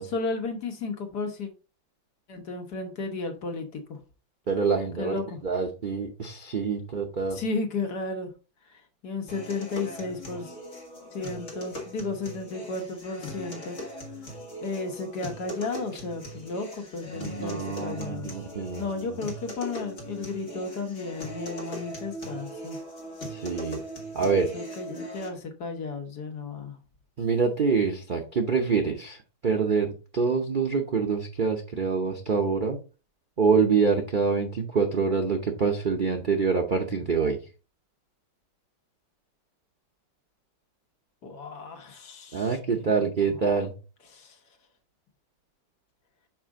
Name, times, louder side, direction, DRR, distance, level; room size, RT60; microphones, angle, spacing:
voice 1, 0.0-1.5 2.3-4.0 5.0-5.4 7.3-8.3 9.0-10.5 11.1-13.8 14.6-18.3 18.7-22.8 24.3-26.8 41.2-43.1 44.1-44.3, left 3 dB, 60° left, 1.6 m, -34 dB
voice 2, 4.5-5.1 5.4-7.4 17.1-18.9 23.3-23.8 24.1-24.5 27.2-29.2 29.4-32.8 33.4-37.4 42.3-43.7, right 5 dB, 65° right, 0.5 m, -25 dB
sound 1, 9.3-25.3, equal, 40° left, 1.7 m, -40 dB
6.1 x 5.0 x 3.6 m
omnidirectional pair, 2.1 m